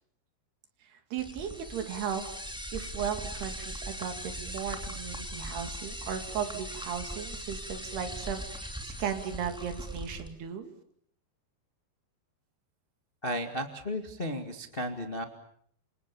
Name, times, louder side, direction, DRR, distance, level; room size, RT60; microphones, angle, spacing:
voice 1, 1.1-2.2 2.7-10.7, right 8 dB, 70° right, 6 dB, 4.5 m, -36 dB
sound 1, 1.2-10.3, equal, ahead, 2.0 m, -40 dB
voice 2, 13.2-15.2, equal, 35° left, 5 dB, 0.8 m, -34 dB
29.0 x 27.0 x 7.1 m, 0.67 s
omnidirectional pair, 4.9 m